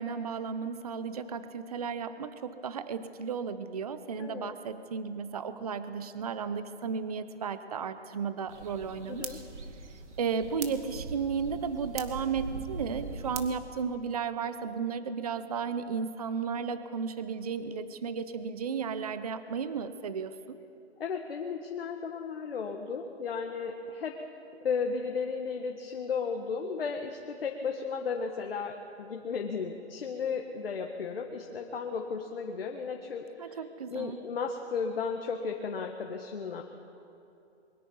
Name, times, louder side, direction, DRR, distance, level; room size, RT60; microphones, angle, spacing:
voice 1, 0.0-9.4 10.2-20.6 33.4-34.2, right 6 dB, 35° right, 12 dB, 0.7 m, -34 dB
voice 2, 4.2-4.5 9.1-9.4 21.0-24.2 24.6-33.6 33.9-36.6, left 5 dB, 55° left, 3 dB, 1.7 m, -34 dB
sound 1, 8.5-13.5, right 4 dB, 85° right, 2.3 m, -41 dB
23.5 x 22.5 x 5.5 m, 2.7 s
hypercardioid pair, 170°, 34 cm